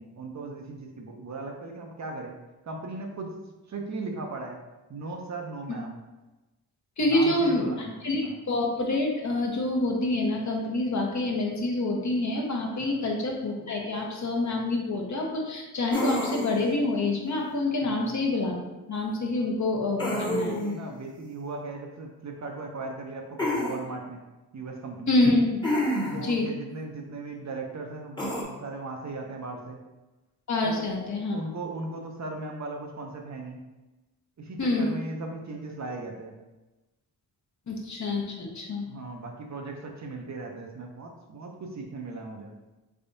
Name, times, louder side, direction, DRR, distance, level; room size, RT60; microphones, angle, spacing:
voice 1, 0.0-2.3 2.7-3.4 3.7-4.6 4.9-6.0 7.0-8.0 8.2-8.4 12.8-13.0 17.8-18.0 20.1-24.2 24.5-25.3 26.1-29.8 30.6-33.6 34.4-36.3 38.8-42.5, right 3 dB, 40° right, 2 dB, 0.7 m, -38 dB
voice 2, 7.0-18.6 18.9-20.6 25.1-25.6 26.2-26.5 30.5-31.4 34.6-35.0 37.7-38.8, left 2 dB, 40° left, 0 dB, 0.9 m, -27 dB
sound 1, 15.9-16.7 20.0-20.8 23.4-23.8 25.6-26.3 28.2-28.4, left 1 dB, 10° left, 1.1 m, -28 dB
3.5 x 3.3 x 2.7 m, 1.1 s
supercardioid pair, 50°, 42 cm